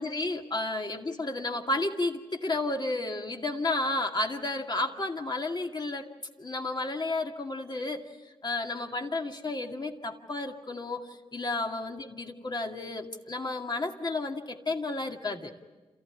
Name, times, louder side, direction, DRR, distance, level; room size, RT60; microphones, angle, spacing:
voice 1, 0.0-6.1 6.4-8.0 8.4-15.5, left 2 dB, 40° left, 3 dB, 2.3 m, -32 dB
27.5 x 15.0 x 9.7 m, 1.2 s
cardioid pair, 50°, 12 cm